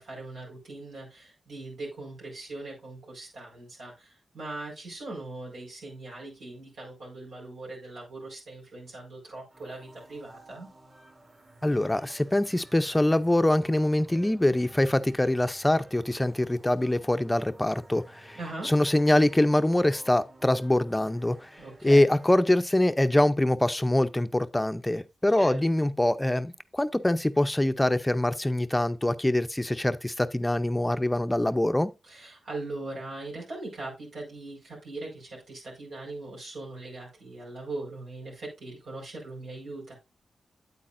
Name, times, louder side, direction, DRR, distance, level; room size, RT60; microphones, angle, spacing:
voice 1, 0.0-10.7 18.3-18.7 21.6-22.1 25.3-25.6 32.1-39.9, right 2 dB, 80° right, 4.6 m, -40 dB
sound 1, 9.5-23.0, right 2 dB, 45° right, 2.7 m, -53 dB
voice 2, 11.6-18.4 18.6-21.5 21.8-31.9, left 1 dB, 15° left, 0.5 m, -24 dB
8.5 x 8.4 x 2.5 m
cardioid pair, 65°, 0 cm